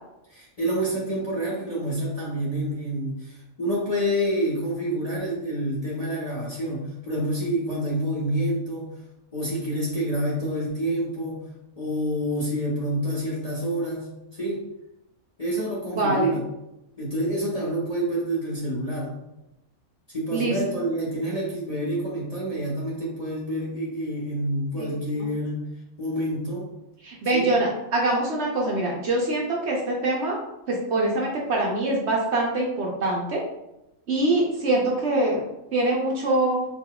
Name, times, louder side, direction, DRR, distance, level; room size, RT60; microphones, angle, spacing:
voice 1, 0.3-8.9 9.3-11.5 11.8-14.6 15.4-16.4 17.0-19.2 20.1-25.7 26.0-26.7 27.3-27.6, right 1 dB, 30° left, -5 dB, 0.8 m, -28 dB
voice 2, 15.9-16.3 20.3-20.6 24.8-24.9 27.0-30.4 30.7-33.4 34.1-35.4 35.7-36.7, right 2 dB, 60° right, -2 dB, 0.9 m, -24 dB
4.2 x 3.9 x 2.3 m, 0.91 s
omnidirectional pair, 1.5 m